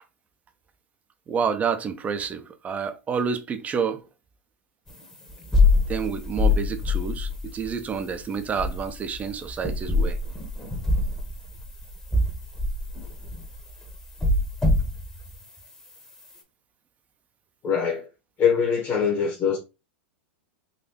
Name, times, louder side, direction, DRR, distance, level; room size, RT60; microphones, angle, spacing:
voice 1, 1.3-4.1 5.9-10.2, right 6 dB, 25° right, 0.6 m, -29 dB
sound 1, 4.9-15.6, left 3 dB, 10° left, 1.0 m, -25 dB
voice 2, 17.6-18.1 18.4-19.6, left 7 dB, 35° left, 1.2 m, -23 dB
4.1 x 2.6 x 2.9 m
hypercardioid pair, 100°, 6 cm